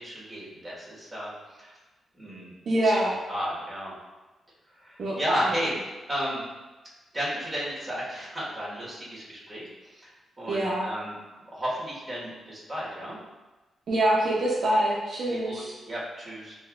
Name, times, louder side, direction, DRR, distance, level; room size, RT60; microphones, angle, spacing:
voice 1, 0.0-1.3 1.6-1.7 2.1-2.5 2.8-3.0 3.3-3.9 4.8-5.7 6.1-6.4 7.1-10.1 10.4-11.1 11.5-13.2 15.3-16.6, equal, 15° right, -7 dB, 1.3 m, -33 dB
voice 2, 2.7-3.1 5.0-5.2 10.5-10.9 13.9-15.7, right 1 dB, 55° right, -5 dB, 0.6 m, -25 dB
5.5 x 2.6 x 2.4 m, 1.1 s
wide cardioid pair, 135°, 0 cm